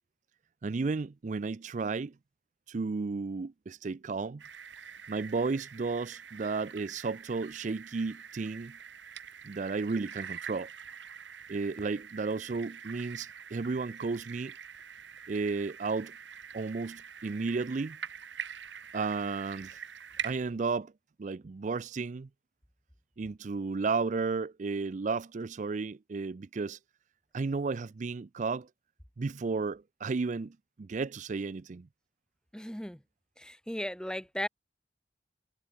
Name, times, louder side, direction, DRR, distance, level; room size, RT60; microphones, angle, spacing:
voice 1, 0.6-2.1 2.7-4.4 5.1-8.8 9.4-10.7 11.5-14.5 15.3-16.1 16.5-18.0 18.9-19.8 20.2-20.9 21.2-22.3 23.2-26.8 27.3-28.7 29.2-31.9, right 4 dB, 40° right, 0.4 m, -33 dB
sound 1, 4.4-20.4, right 7 dB, 85° right, 1.6 m, -45 dB
voice 2, 32.5-33.0 33.4-34.5, equal, 5° left, 1.1 m, -36 dB
head